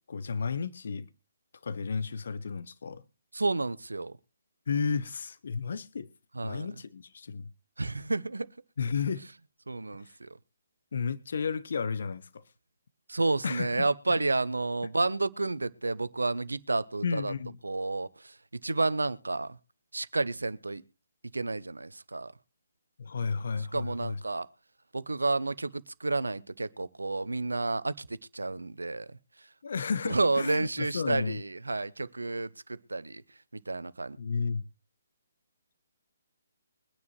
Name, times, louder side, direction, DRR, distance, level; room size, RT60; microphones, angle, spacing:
voice 1, 0.1-1.1 1.6-3.0 4.7-6.1 6.4-7.5 8.8-9.2 10.0-10.2 10.9-12.4 13.4-13.8 14.1-14.2 17.0-17.6 23.0-24.2 29.6-31.4 34.2-34.7, left 5 dB, 55° left, 0.8 m, -33 dB
voice 2, 3.3-4.2 6.3-6.7 7.8-8.5 9.7-10.3 13.1-17.3 17.6-18.4 18.6-19.6 19.9-20.8 21.3-22.3 23.7-24.5 24.9-29.2 30.0-33.2 33.5-34.2, right 3 dB, 75° right, 0.8 m, -30 dB
23.0 x 9.6 x 3.1 m
figure-of-eight pair, 135°, 0 cm